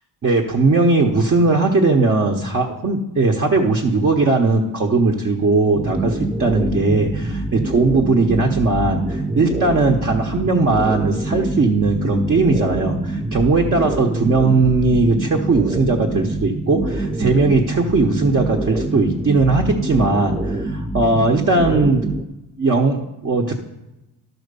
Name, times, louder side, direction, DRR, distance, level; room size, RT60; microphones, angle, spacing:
voice 1, 0.2-22.0 22.6-23.5, right 3 dB, 35° right, 0 dB, 0.9 m, -18 dB
sound 1, 5.7-22.2, right 2 dB, 10° right, 0.3 m, -25 dB
12.0 x 4.4 x 6.7 m, 0.96 s
cardioid pair, 160°, 41 cm